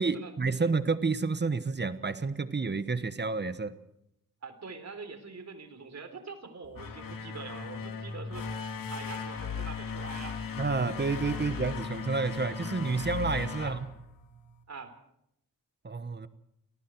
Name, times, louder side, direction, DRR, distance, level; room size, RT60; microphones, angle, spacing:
voice 1, 0.0-3.7 10.6-13.9 15.8-16.3, right 4 dB, 30° right, 12 dB, 1.2 m, -30 dB
voice 2, 4.4-8.5 8.9-10.4 13.6-13.8 14.7-14.9, right 4 dB, 55° right, 9 dB, 3.8 m, -44 dB
sound 1, 6.6-14.6, left 5 dB, 80° left, 2.7 m, -37 dB
29.0 x 19.5 x 4.6 m, 0.77 s
cardioid pair, 90°, 33 cm